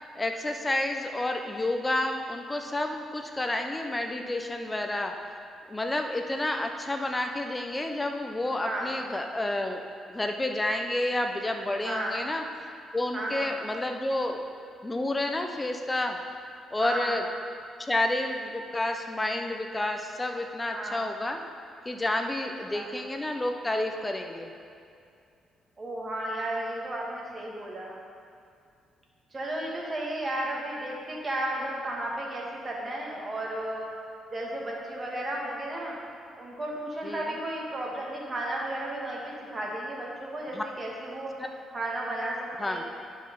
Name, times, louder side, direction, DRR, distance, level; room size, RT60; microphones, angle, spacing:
voice 1, 0.2-5.1 5.7-9.8 10.1-12.4 12.9-14.4 14.8-16.2 16.7-17.2 17.9-21.4 21.9-24.5 37.0-37.3 40.5-40.6 42.6-42.8, left 1 dB, 15° left, 4 dB, 0.7 m, -30 dB
voice 2, 8.6-9.0 11.8-12.2 13.1-13.5 16.8-17.2 20.7-21.1 22.4-22.9 25.8-28.0 29.3-33.9 34.3-36.0 36.4-41.4 41.7-42.8, right 1 dB, 30° right, -3 dB, 2.1 m, -34 dB
11.0 x 5.3 x 5.5 m, 2.4 s
cardioid pair, 90°, 0 cm